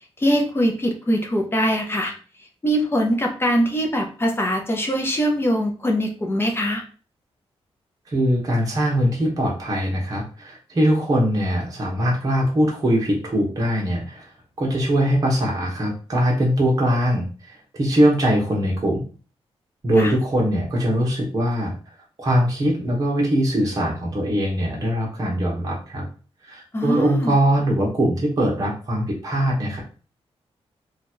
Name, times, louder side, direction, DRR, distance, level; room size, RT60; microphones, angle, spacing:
voice 1, 0.2-2.1 2.6-6.8 20.0-20.1 26.7-27.3, equal, 20° left, 2 dB, 0.8 m, -22 dB
voice 2, 8.1-14.3 14.6-19.0 19.8-21.7 22.2-26.0 26.4-29.8, equal, 35° right, -3 dB, 1.2 m, -21 dB
3.1 x 2.5 x 4.3 m, 0.38 s
wide cardioid pair, 125°, 11 cm